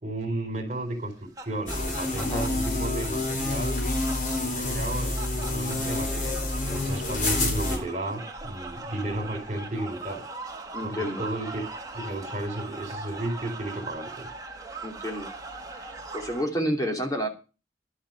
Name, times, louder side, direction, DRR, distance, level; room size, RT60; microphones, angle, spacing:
voice 1, 0.0-3.8 4.4-10.2 10.8-11.7 11.9-14.3, right 1 dB, 40° right, 6 dB, 3.9 m, -33 dB
sound 1, 1.0-16.4, right 3 dB, 20° right, 1.8 m, -41 dB
sound 2, 1.7-7.8, left 2 dB, 45° left, 4.0 m, -28 dB
voice 2, 10.7-11.2 14.8-15.3 15.7-17.3, equal, 20° left, 2 dB, 2.8 m, -30 dB
11.5 x 8.1 x 7.4 m, 0.33 s
head